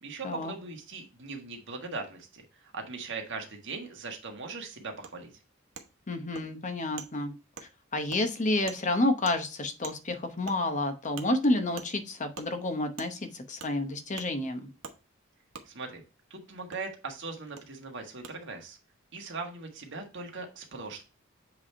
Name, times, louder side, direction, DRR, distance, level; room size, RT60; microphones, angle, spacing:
voice 1, 0.0-5.3 15.6-16.0 16.3-18.8 19.1-21.0, right 3 dB, 60° right, 2 dB, 1.6 m, -40 dB
Wood, 5.0-5.1 5.7-5.9 6.3-6.5 7.0-7.1 7.6-7.7 8.1-8.2 8.7-8.8 9.2-9.4 9.8-10.0 10.5-10.6 11.2-11.3 11.8-11.9 12.3-12.5 13.0-13.1 13.6-13.7 14.2-14.3 14.8-15.0 15.5-15.7 16.7-16.8 17.6-17.7 18.2-18.3, right 5 dB, 85° right, 1.0 m, -43 dB
voice 2, 6.1-7.3 7.9-14.7, left 2 dB, 35° left, 7 dB, 0.9 m, -29 dB
7.6 x 3.4 x 4.3 m, 0.31 s
head